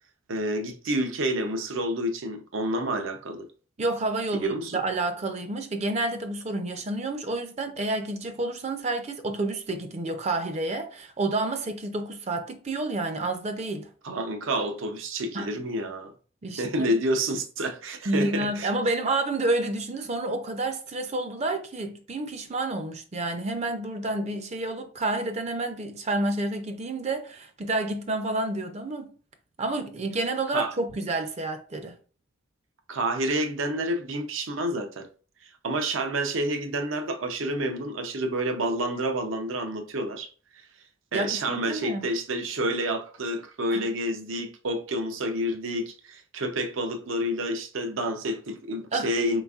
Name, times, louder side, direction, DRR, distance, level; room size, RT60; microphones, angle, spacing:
voice 1, 0.3-3.5 4.3-4.8 14.0-16.1 16.6-18.7 30.5-30.7 32.9-35.1 35.4-40.3 40.5-40.7 41.1-49.4, right 1 dB, 80° right, 0.6 m, -29 dB
voice 2, 3.8-13.9 15.3-15.5 16.4-16.9 18.1-29.1 29.6-32.0 41.1-42.1 43.7-43.9 48.9-49.1, right 2 dB, 35° right, 0.4 m, -29 dB
3.9 x 3.4 x 2.3 m
head